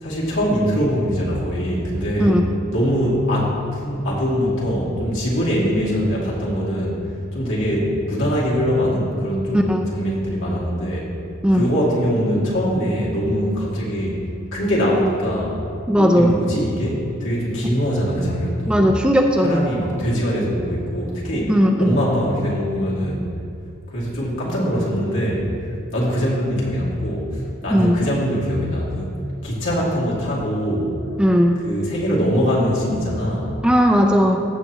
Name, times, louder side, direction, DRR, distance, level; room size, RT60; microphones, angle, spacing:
voice 1, 0.0-2.3 2.7-7.0 7.3-11.1 11.5-14.2 14.5-15.7 16.0-18.9 19.4-23.3 23.9-29.1 29.4-30.9 31.6-33.5, equal, 75° left, -6 dB, 2.5 m, -22 dB
voice 2, 2.2-2.5 9.5-9.8 11.4-11.7 15.9-16.3 18.7-19.7 21.5-22.0 27.7-28.0 31.2-31.6 33.6-34.4, equal, 5° right, 1 dB, 0.4 m, -17 dB
15.0 x 6.8 x 3.0 m, 2.5 s
head